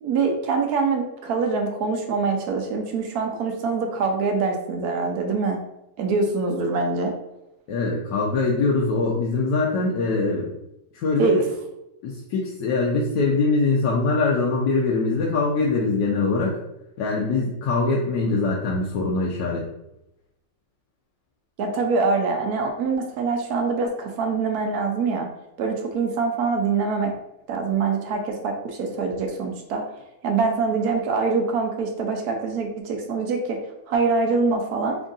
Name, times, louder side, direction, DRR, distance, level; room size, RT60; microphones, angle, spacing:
voice 1, 0.0-5.6 6.0-7.1 11.2-11.3 21.6-25.3 25.6-27.1 27.5-29.8 30.2-33.6 33.9-35.0, right 4 dB, 70° right, 3 dB, 0.9 m, -24 dB
voice 2, 7.7-10.5 10.9-11.4 12.0-16.6 17.0-19.6, left 3 dB, 75° left, -3 dB, 1.2 m, -23 dB
3.5 x 2.4 x 3.8 m, 0.88 s
omnidirectional pair, 2.0 m